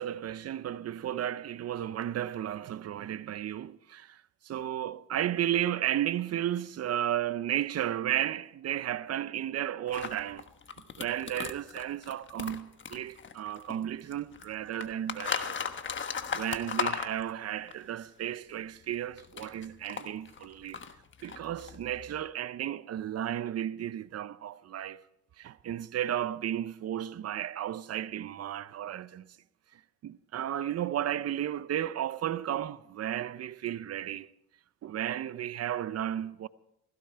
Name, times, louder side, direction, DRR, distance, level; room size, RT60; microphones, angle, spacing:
voice 1, 0.0-10.5 11.0-15.6 16.3-20.8 21.2-25.0 25.4-29.4 29.7-34.3 34.8-36.5, right 11 dB, 55° right, 0.6 m, -33 dB
sound 1, 9.9-13.8 14.1-17.7 18.9-22.2, left 6 dB, 40° left, 1.3 m, -37 dB
17.0 x 15.5 x 4.5 m
cardioid pair, 90°, 30 cm